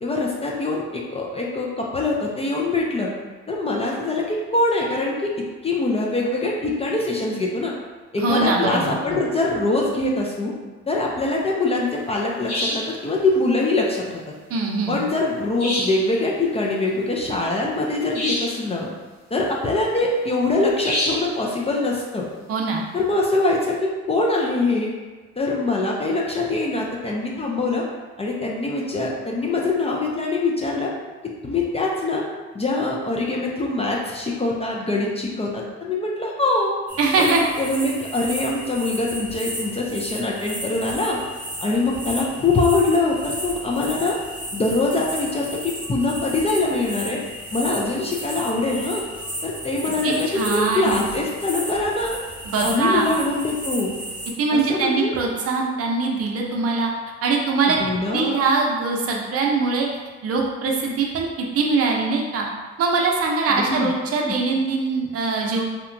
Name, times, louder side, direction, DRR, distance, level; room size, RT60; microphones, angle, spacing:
voice 1, 0.0-3.1 3.5-7.7 8.1-10.5 10.9-14.2 14.9-18.9 19.3-22.3 22.9-24.9 25.4-27.8 28.2-30.9 31.2-32.2 32.5-36.7 37.2-41.2 41.6-44.2 44.5-47.2 47.5-49.0 49.4-52.2 52.6-53.9 54.5-55.1 57.7-58.5 63.5-64.4, left 2 dB, 20° left, -2 dB, 0.3 m, -23 dB
voice 2, 8.2-9.2 14.5-15.0 22.5-22.8 37.0-37.4 50.0-51.0 52.5-53.1 54.4-56.9 57.2-57.8 58.1-59.9 60.2-62.5 62.8-65.6, right 4 dB, 55° right, 0 dB, 0.5 m, -22 dB
sound 1, 12.5-13.0 15.6-16.1 18.1-18.6 20.8-21.3, left 1 dB, 75° left, 1.4 m, -26 dB
sound 2, 36.9-54.3, right 1 dB, 5° right, 0.8 m, -34 dB
2.8 x 2.2 x 2.5 m, 1.3 s
cardioid pair, 100°, 29 cm